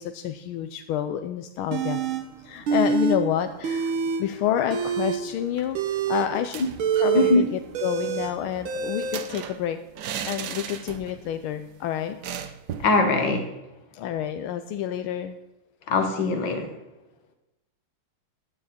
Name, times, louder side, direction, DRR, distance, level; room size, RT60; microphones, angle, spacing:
voice 1, 0.0-2.0 2.4-3.9 4.2-6.6 7.0-9.8 10.3-12.2 13.9-15.4, left 10 dB, 85° left, 8 dB, 1.5 m, -28 dB
sound 1, 1.7-2.2 2.6-3.2 3.5-4.2 4.6-9.2, right 6 dB, 80° right, 2.0 m, -26 dB
sound 2, 6.4-7.2 7.5-7.6 7.9-11.3 11.6-11.7 12.2-13.0, right 8 dB, 60° right, 1.3 m, -36 dB
voice 2, 7.1-7.5 12.8-13.5 15.9-16.7, left 3 dB, 65° left, 6 dB, 2.2 m, -21 dB
15.5 x 9.6 x 4.3 m, 1.0 s
omnidirectional pair, 2.2 m